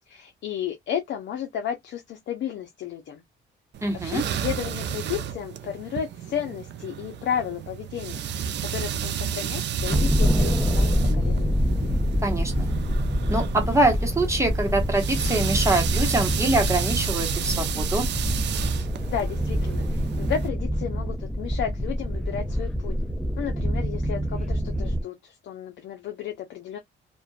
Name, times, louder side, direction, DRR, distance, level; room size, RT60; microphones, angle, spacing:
voice 1, 0.1-3.2 4.0-11.6 19.1-23.0 23.4-26.8, left 9 dB, 70° left, 0.6 m, -33 dB
sound 1, 3.7-20.5, right 9 dB, 60° right, 0.4 m, -32 dB
voice 2, 3.8-4.2 12.2-12.7 13.3-18.1, right 2 dB, 15° right, 1.0 m, -24 dB
sound 2, 9.8-25.0, equal, 5° left, 0.7 m, -26 dB
2.5 x 2.2 x 2.3 m
cardioid pair, 90°, 20 cm